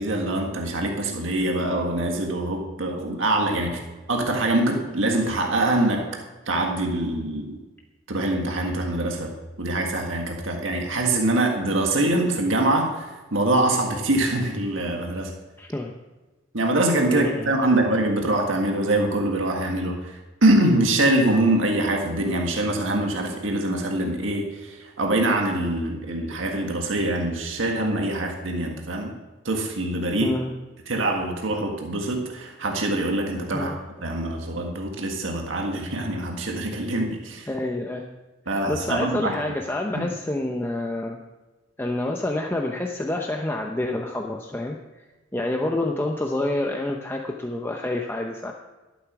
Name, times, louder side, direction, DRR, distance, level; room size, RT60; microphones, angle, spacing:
voice 1, 0.0-3.8 4.1-6.0 6.5-7.6 8.1-9.3 9.6-13.0 13.3-15.3 16.5-29.1 29.4-30.3 30.9-33.8 34.0-37.5 38.5-39.4 39.9-40.1, right 1 dB, 85° right, 1 dB, 1.7 m, -24 dB
voice 2, 15.6-16.0 17.1-17.5 30.2-30.5 33.5-33.7 37.5-38.0 38.5-41.2 41.8-44.8 45.3-48.5, left 1 dB, 10° left, 1 dB, 0.7 m, -28 dB
12.5 x 8.2 x 6.1 m, 1.2 s
head